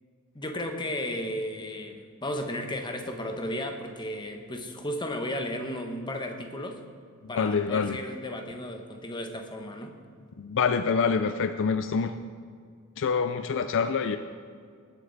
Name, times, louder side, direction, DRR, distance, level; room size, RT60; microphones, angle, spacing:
voice 1, 0.3-6.8 7.3-9.9, left 1 dB, 20° left, 4 dB, 1.1 m, -34 dB
voice 2, 7.2-8.0 10.4-12.1 13.0-14.2, left 5 dB, 60° left, 10 dB, 0.4 m, -26 dB
19.0 x 8.3 x 4.1 m, 2.1 s
head